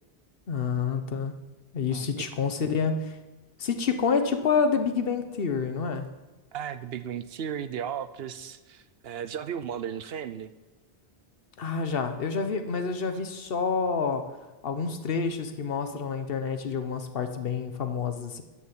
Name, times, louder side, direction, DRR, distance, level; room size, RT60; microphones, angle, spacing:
voice 1, 0.5-1.3 1.7-3.2 3.6-6.1 11.6-14.3 14.6-18.4, left 5 dB, 65° left, 8 dB, 1.2 m, -28 dB
voice 2, 1.9-2.3 6.5-10.5, right 8 dB, 70° right, 13 dB, 0.9 m, -35 dB
13.0 x 6.2 x 8.1 m, 1.1 s
omnidirectional pair, 1.1 m